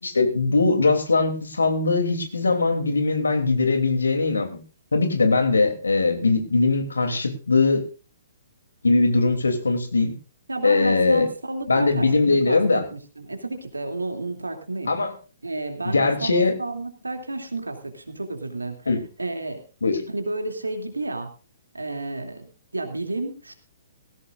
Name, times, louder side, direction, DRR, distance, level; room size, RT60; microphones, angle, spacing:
voice 1, 0.0-4.6 4.9-7.8 8.8-10.1 10.6-11.3 11.7-12.8 14.9-15.1 15.9-16.5 18.9-19.0 19.8-20.1, left 3 dB, 75° left, 6 dB, 3.0 m, -21 dB
voice 2, 10.5-14.9 15.4-18.8 19.2-19.6 20.1-21.3 21.7-23.5, right 2 dB, 80° right, 5 dB, 2.8 m, -31 dB
18.5 x 16.0 x 2.5 m, 0.34 s
figure-of-eight pair, 120°, 0 cm